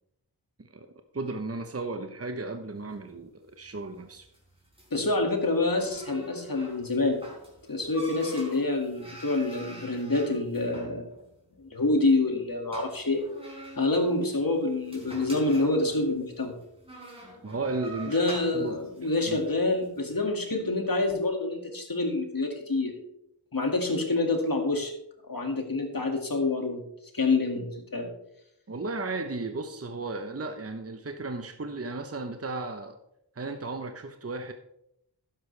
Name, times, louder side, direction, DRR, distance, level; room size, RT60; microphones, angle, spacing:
voice 1, 1.1-4.3 17.4-18.2 18.5-19.4 28.7-33.0 33.4-34.5, right 3 dB, 35° right, 7 dB, 0.9 m, -35 dB
sound 1, 2.7-20.0, right 1 dB, 15° right, 4.9 m, -47 dB
voice 2, 4.9-7.2 7.7-11.1 11.6-13.2 13.8-16.6 18.1-22.9 23.5-24.9 25.3-26.8 27.1-28.1, left 2 dB, 55° left, 3 dB, 2.3 m, -27 dB
12.0 x 10.0 x 3.4 m, 0.77 s
wide cardioid pair, 55°, 42 cm